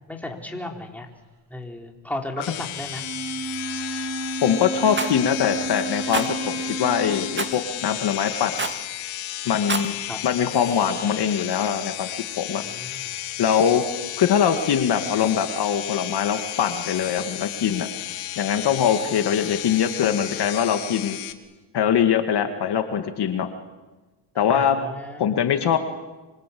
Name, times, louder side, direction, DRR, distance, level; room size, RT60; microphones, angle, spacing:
voice 1, 0.1-1.1 1.5-3.0 10.1-10.2 12.6-13.1 24.5-25.5, left 1 dB, 5° left, 1 dB, 4.1 m, -35 dB
sound 1, 2.4-21.3, left 13 dB, 85° left, 2.0 m, -33 dB
Wind instrument woodwind instrument, 2.9-7.7, right 2 dB, 40° right, 3.5 m, -32 dB
voice 2, 4.4-6.5 6.8-8.5 9.5-10.0 10.2-12.1 12.4-12.6 13.4-13.8 14.2-17.9 18.4-21.2 21.7-23.5 24.4-24.8 25.2-25.8, left 8 dB, 55° left, 6 dB, 2.2 m, -22 dB
Rattle, 4.9-5.2 6.1-6.3 7.4-7.6 8.6-8.8 9.5-9.9, right 4 dB, 25° right, 2.1 m, -27 dB
26.5 x 24.0 x 8.7 m, 1.2 s
cardioid pair, 115°, 47 cm